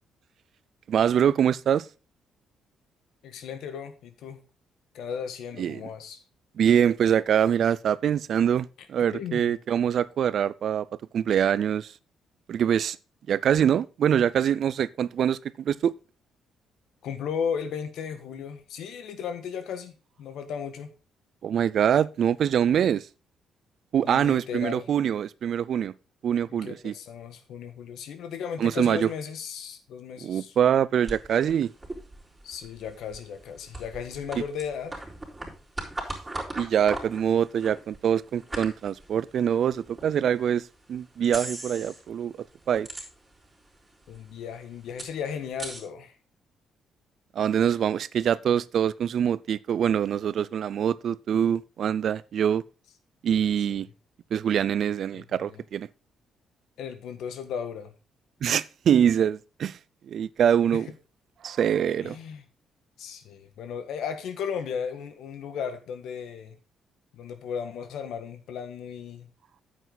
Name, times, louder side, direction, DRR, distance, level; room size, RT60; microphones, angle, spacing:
voice 1, 0.9-1.9 5.6-5.8 6.6-10.9 11.1-11.9 12.5-13.0 13.3-15.9 21.4-23.1 23.9-25.9 26.2-26.9 28.6-29.1 30.2-31.7 36.6-42.3 42.7-42.9 47.4-52.6 53.2-53.9 54.3-55.9 58.4-59.8 60.1-60.9 61.4-62.2, right 9 dB, 65° right, 0.4 m, -24 dB
voice 2, 3.2-4.4 4.9-6.2 9.1-9.6 17.0-20.9 24.0-24.9 26.5-30.5 32.4-35.0 44.1-46.1 55.1-55.6 56.8-57.9 60.7-60.8 62.0-62.4 63.0-66.6 67.1-69.3, left 7 dB, 80° left, 1.5 m, -35 dB
sound 1, 31.1-40.1 40.6-40.7 41.2-42.1 42.4-43.5 43.8-43.9 44.1-45.8, right 2 dB, 15° right, 4.1 m, -39 dB
9.3 x 8.1 x 4.0 m
cardioid pair, 90°, 0 cm